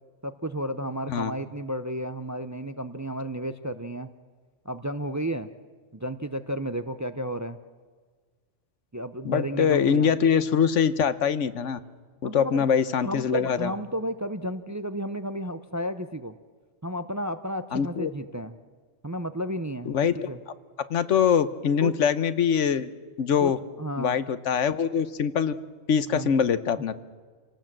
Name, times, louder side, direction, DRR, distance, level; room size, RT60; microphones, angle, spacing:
voice 1, 0.2-4.1 4.6-5.5 5.9-7.6 8.9-10.1 12.2-12.6 13.0-16.4 16.8-18.5 19.0-20.4 21.8-21.9 23.4-23.5 23.8-24.2 26.1-26.4, equal, 20° right, 10 dB, 0.6 m, -32 dB
voice 2, 9.2-11.8 12.2-13.7 17.7-18.1 19.9-20.3 20.9-22.9 23.2-23.6 24.0-25.5 25.9-26.9, left 7 dB, 80° left, 13 dB, 1.2 m, -23 dB
28.0 x 18.5 x 7.6 m, 1.5 s
omnidirectional pair, 1.2 m